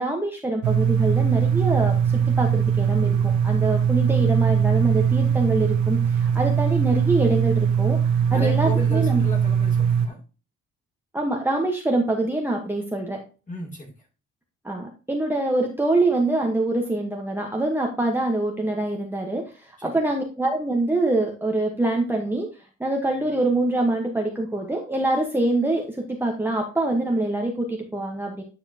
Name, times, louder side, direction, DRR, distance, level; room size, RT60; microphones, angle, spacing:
voice 1, 0.0-8.0 8.3-9.2 11.1-13.2 14.6-22.5 22.8-28.4, right 2 dB, 5° right, 0 dB, 1.2 m, -25 dB
sound 1, 0.6-10.1, right 7 dB, 75° right, 0.7 m, -21 dB
voice 2, 8.3-10.2 13.5-13.9 19.8-20.0, equal, 25° left, -1 dB, 2.7 m, -35 dB
9.3 x 4.8 x 2.8 m, 0.34 s
cardioid pair, 90°, 30 cm